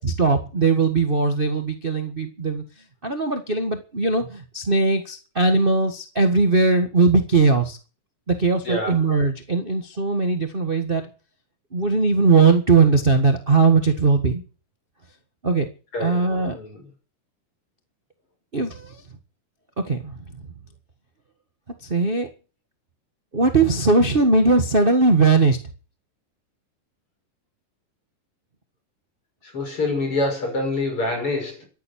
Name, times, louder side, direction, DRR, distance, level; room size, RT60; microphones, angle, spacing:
voice 1, 0.0-2.6 3.0-7.8 8.3-11.0 11.7-14.4 15.4-15.7 16.0-16.6 18.5-19.0 19.9-20.2 21.8-22.3 23.3-25.6, right 3 dB, 35° right, 0.9 m, -19 dB
voice 2, 8.6-9.0 15.9-16.3 16.5-16.8 29.4-31.7, left 2 dB, 40° left, 7.2 m, -26 dB
14.0 x 10.5 x 8.7 m
omnidirectional pair, 3.8 m